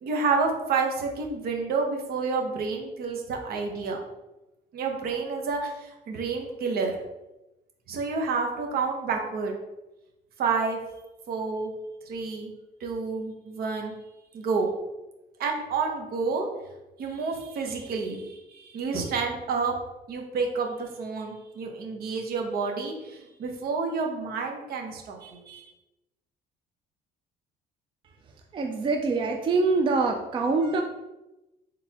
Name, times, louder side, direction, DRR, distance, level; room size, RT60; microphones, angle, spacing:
voice 1, 0.0-4.0 4.7-7.0 7.9-9.6 10.4-10.8 11.3-11.7 12.1-12.5 12.8-14.0 14.3-14.7 15.4-16.5 17.0-19.7 20.1-25.6, right 4 dB, 65° right, 2 dB, 0.8 m, -29 dB
voice 2, 28.5-30.8, right 3 dB, 30° right, 2 dB, 0.4 m, -24 dB
3.9 x 3.3 x 2.9 m, 0.98 s
cardioid pair, 110°, 17 cm